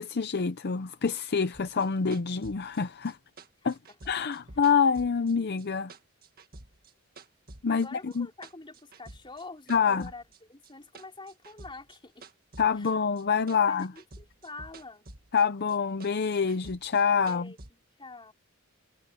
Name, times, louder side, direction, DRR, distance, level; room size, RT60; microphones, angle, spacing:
voice 1, 0.0-3.2 3.6-3.8 4.1-5.9 7.6-8.3 9.7-10.1 12.6-13.9 15.3-17.5, left 6 dB, 50° left, 0.6 m, -26 dB
sound 1, 1.5-5.6 5.9-7.9 8.1-9.4 9.7-13.2 13.5-15.4 15.7-17.7, right 2 dB, 45° right, 1.7 m, -50 dB
voice 2, 7.7-10.2 10.5-12.3 12.8-12.9 13.5-15.1 17.3-17.6 18.0-18.3, left 3 dB, 25° left, 4.0 m, -46 dB
head